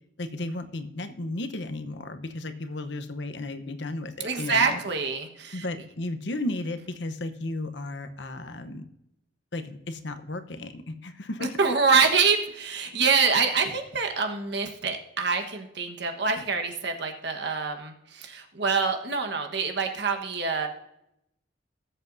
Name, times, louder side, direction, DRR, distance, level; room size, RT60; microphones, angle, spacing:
voice 1, 0.2-4.8 5.5-8.9 9.5-11.5 12.9-13.0, left 2 dB, 65° left, 8 dB, 0.9 m, -34 dB
voice 2, 4.2-5.6 11.6-20.7, right 5 dB, 65° right, 5 dB, 1.3 m, -25 dB
19.0 x 7.8 x 2.7 m, 0.82 s
head